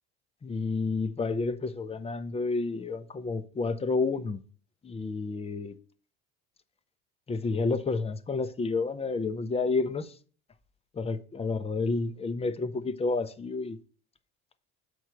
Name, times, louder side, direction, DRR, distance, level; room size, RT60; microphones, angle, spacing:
voice 1, 0.4-4.4 4.8-5.7 7.3-10.2 10.9-13.8, left 3 dB, 20° left, 0.6 m, -30 dB
7.9 x 3.2 x 5.8 m
supercardioid pair, 95°, 30 cm